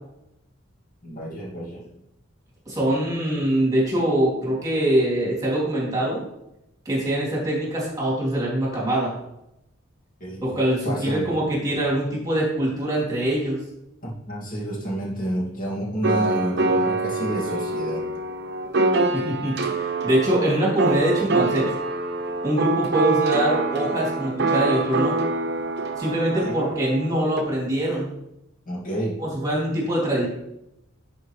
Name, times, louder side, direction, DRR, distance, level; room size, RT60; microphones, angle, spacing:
voice 1, 1.0-1.9 10.2-10.4 10.8-11.4 14.0-18.1 26.4-26.6 28.7-29.2, right 1 dB, 40° left, -5 dB, 2.3 m, -29 dB
voice 2, 2.7-6.2 6.8-9.1 10.4-13.6 19.1-19.6 20.0-21.7 22.4-25.2 26.0-28.1 29.2-30.3, right 1 dB, 20° right, -5 dB, 3.2 m, -23 dB
sound 1, 16.0-27.4, right 3 dB, 55° right, 0.9 m, -25 dB
11.5 x 5.5 x 3.3 m, 0.87 s
head